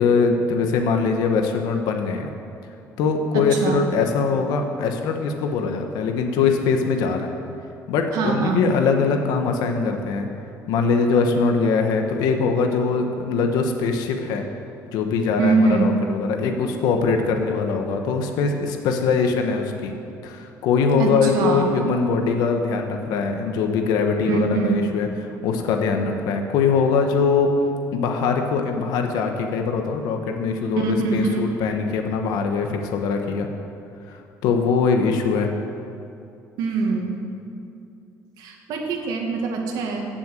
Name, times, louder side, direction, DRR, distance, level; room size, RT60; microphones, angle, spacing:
voice 1, 0.0-2.3 3.0-7.3 7.9-10.3 10.7-14.4 14.9-19.9 20.2-25.1 25.4-27.5 27.9-30.9 31.1-33.5 34.1-35.5, left 5 dB, 90° left, 4 dB, 1.3 m, -22 dB
voice 2, 3.3-3.8 8.1-8.7 15.4-15.9 21.0-21.7 24.3-24.8 30.8-31.4 36.6-37.2 38.4-40.1, right 4 dB, 80° right, 1 dB, 2.0 m, -23 dB
16.5 x 7.1 x 7.6 m, 2.6 s
cardioid pair, 165°, 7 cm